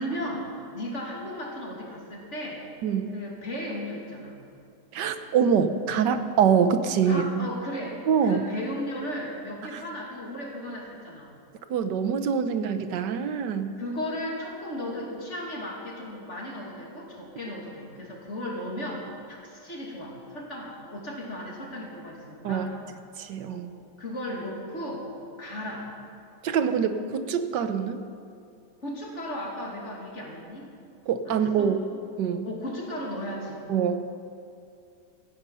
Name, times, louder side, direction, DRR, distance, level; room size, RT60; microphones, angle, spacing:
voice 1, 0.0-2.6 3.1-4.4 7.1-11.3 13.8-22.7 23.5-23.7 24.0-25.1 25.4-25.9 28.8-30.7 31.3-31.7 32.4-33.6, equal, 40° left, -2 dB, 3.0 m, -35 dB
voice 2, 2.8-3.1 4.9-7.5 8.1-8.4 9.7-9.8 11.7-13.7 22.4-22.7 23.2-23.7 26.4-28.0 31.1-31.8 32.2-32.5 33.7-34.1, right 7 dB, 90° right, 9 dB, 1.5 m, -25 dB
16.0 x 15.0 x 5.6 m, 2.5 s
omnidirectional pair, 1.8 m